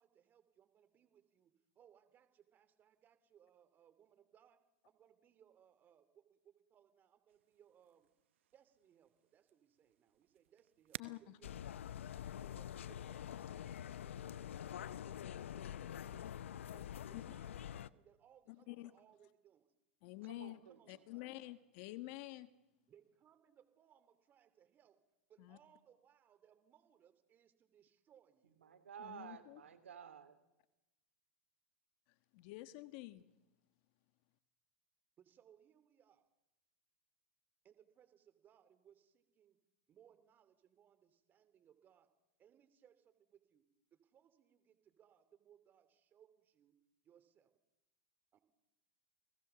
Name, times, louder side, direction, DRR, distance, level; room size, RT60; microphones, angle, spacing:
voice 1, 0.0-4.6 4.8-8.1 8.5-12.0 12.4-19.7 20.7-21.3 22.9-25.0 25.3-28.6 35.2-36.3 37.6-39.6 39.9-42.1 42.4-43.6 43.9-46.8 47.0-47.5 48.3-48.4, right 9 dB, 30° right, 3.0 m, -68 dB
sound 1, 7.3-14.2, right 13 dB, 75° right, 0.9 m, -58 dB
voice 2, 11.0-11.4 17.1-17.2 18.5-18.9 20.0-20.6 20.9-22.5 25.4-25.6 29.0-29.6 32.3-33.2, left 18 dB, 55° left, 1.5 m, -49 dB
sound 2, 11.4-17.9, left 10 dB, 80° left, 0.8 m, -46 dB
voice 3, 20.2-21.0 28.6-30.4, right 8 dB, 90° right, 3.0 m, -53 dB
29.5 x 19.0 x 7.1 m
hypercardioid pair, 120°, 7 cm